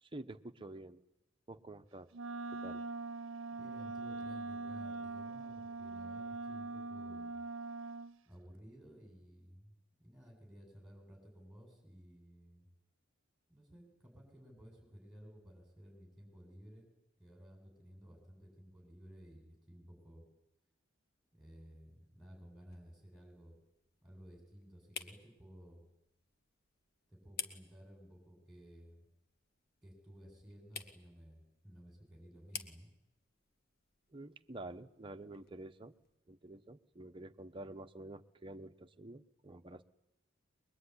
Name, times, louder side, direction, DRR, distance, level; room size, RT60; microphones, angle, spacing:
voice 1, 0.0-1.0 1.5-2.1 2.5-2.8 34.1-35.9 36.3-39.8, right 2 dB, 25° right, 7 dB, 1.1 m, -49 dB
Wind instrument woodwind instrument, 2.1-8.2, right 3 dB, 80° right, 0.9 m, -42 dB
voice 2, 3.5-7.4 8.2-12.7 13.5-16.9 17.2-20.2 21.3-23.6 24.0-25.8 27.1-29.1 29.8-32.9, equal, 5° right, 2 dB, 7.8 m, -56 dB
sound 1, 21.4-36.2, left 7 dB, 55° left, 1.9 m, -53 dB
23.0 x 22.5 x 10.0 m, 0.88 s
head